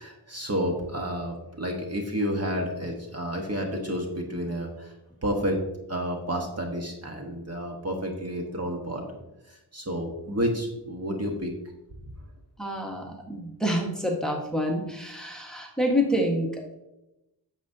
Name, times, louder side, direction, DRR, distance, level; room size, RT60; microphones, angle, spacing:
voice 1, 0.0-4.9 5.2-5.6 5.9-9.2 9.5-11.5, equal, 35° right, 1 dB, 1.3 m, -30 dB
voice 2, 12.6-16.8, equal, ahead, 0 dB, 1.4 m, -28 dB
9.3 x 7.0 x 2.7 m, 0.93 s
wide cardioid pair, 95°, 42 cm